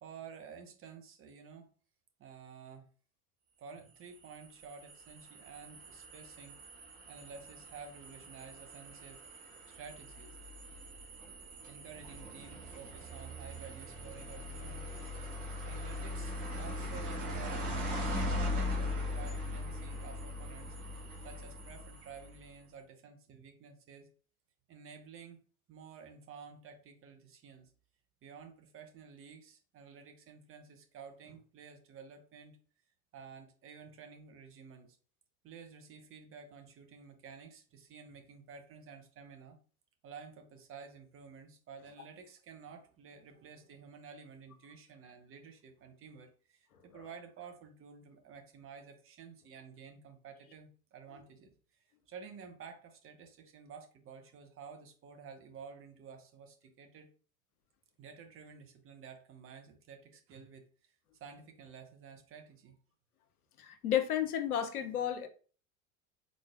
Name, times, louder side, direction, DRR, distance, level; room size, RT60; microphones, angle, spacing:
voice 1, 0.0-1.7 2.2-2.9 3.6-6.6 7.1-9.2 9.7-10.4 11.7-15.2 15.6-17.8 18.4-20.7 21.2-24.1 24.7-25.4 25.7-27.7 28.2-32.6 33.1-34.9 35.4-39.6 40.0-57.1 58.0-60.9 61.2-62.8, right 6 dB, 30° right, 0.8 m, -52 dB
sound 1, 3.9-22.5, left 1 dB, 50° right, 1.4 m, -40 dB
voice 2, 63.6-65.3, left 10 dB, 85° left, 0.6 m, -32 dB
3.8 x 3.1 x 2.4 m
figure-of-eight pair, 80°, 44 cm